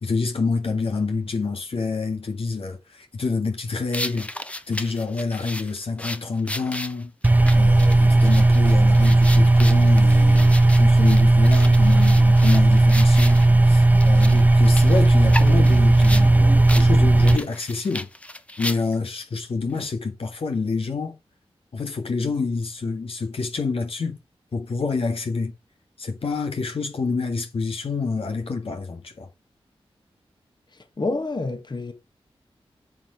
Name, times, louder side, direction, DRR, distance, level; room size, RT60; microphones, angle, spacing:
voice 1, 0.0-4.3 4.7-7.1 7.5-18.1 18.6-21.2 21.7-24.2 24.5-25.5 26.0-29.3, left 4 dB, 70° left, 1.7 m, -27 dB
sound 1, 3.9-13.5 14.0-16.3 16.7-16.9 17.2-19.1, left 1 dB, 10° left, 1.0 m, -34 dB
sound 2, 7.2-17.4, right 2 dB, 15° right, 0.5 m, -15 dB
voice 2, 30.7-31.9, left 2 dB, 45° left, 1.8 m, -28 dB
7.2 x 6.9 x 5.1 m
wide cardioid pair, 65°, 10 cm